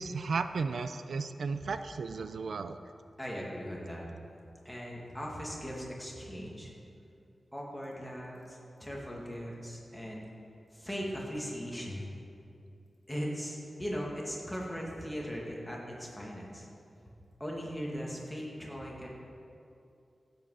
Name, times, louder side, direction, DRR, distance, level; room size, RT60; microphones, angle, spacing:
voice 1, 0.0-2.8, right 4 dB, 80° right, 10 dB, 0.4 m, -34 dB
voice 2, 3.2-4.1 4.6-6.7 7.5-10.2 10.7-12.1 13.1-16.7 17.4-19.1, equal, 5° left, -3 dB, 2.2 m, -39 dB
16.0 x 8.0 x 4.8 m, 2.6 s
wide cardioid pair, 120°, 0 cm